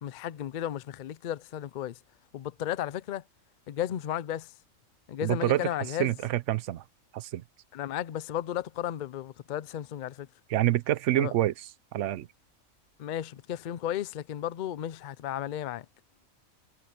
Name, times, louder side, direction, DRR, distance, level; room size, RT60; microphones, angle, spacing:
voice 1, 0.0-2.0 2.3-3.2 3.7-4.5 5.1-6.1 7.7-10.3 11.1-11.3 13.0-15.9, left 11 dB, 90° left, 0.4 m, -34 dB
voice 2, 5.2-5.7 6.0-6.8 7.1-7.4 10.5-11.5 11.9-12.3, right 14 dB, 70° right, 0.8 m, -27 dB
omnidirectional pair, 1.5 m